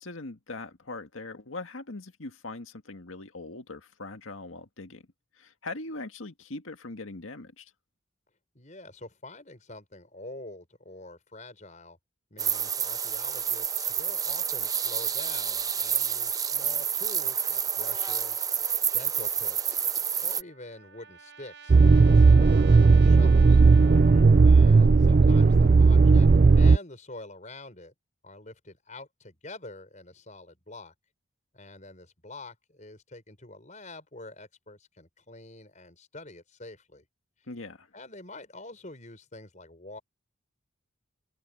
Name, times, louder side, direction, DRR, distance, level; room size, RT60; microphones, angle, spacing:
voice 1, 0.0-5.0 5.4-7.7 23.9-24.3 37.5-37.9, left 2 dB, 90° left, 1.9 m, -41 dB
voice 2, 8.5-12.0 12.3-18.5 18.9-19.8 20.2-23.6 24.4-26.3 26.5-27.9 28.2-30.9 31.5-37.1 37.9-40.0, left 2 dB, 40° left, 5.6 m, -46 dB
sound 1, 12.4-20.4, right 7 dB, 20° right, 0.7 m, -29 dB
Trumpet, 19.8-24.6, right 6 dB, 60° right, 7.3 m, -49 dB
sound 2, 21.7-26.8, right 4 dB, 45° right, 0.4 m, -16 dB
head